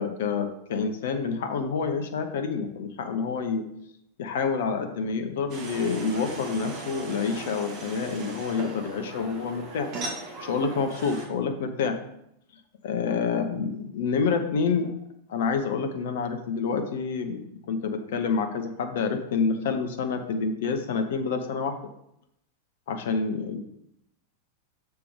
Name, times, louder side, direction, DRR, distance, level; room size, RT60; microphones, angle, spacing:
voice 1, 0.0-3.6 4.2-9.9 10.4-12.0 12.8-14.9 15.3-21.8 22.9-23.6, left 5 dB, 55° left, 7 dB, 0.9 m, -28 dB
sound 1, 5.5-11.3, right 2 dB, 40° right, 1.7 m, -38 dB
6.8 x 4.5 x 5.2 m, 0.79 s
figure-of-eight pair, 90°, 0 cm